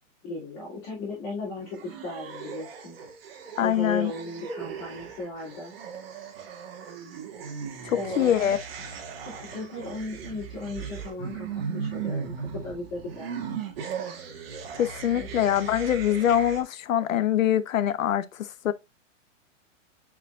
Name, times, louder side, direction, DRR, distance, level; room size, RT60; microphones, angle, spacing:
voice 1, 0.2-3.0 3.6-5.7 7.9-8.5 9.3-13.4 15.1-15.3, left 2 dB, 25° left, 2.9 m, -36 dB
sound 1, 1.6-16.6, right 6 dB, 50° right, 1.7 m, -37 dB
voice 2, 3.6-4.1 7.8-8.6 14.8-18.7, left 10 dB, 85° left, 0.9 m, -24 dB
8.0 x 4.9 x 2.5 m
hypercardioid pair, 175°, 39 cm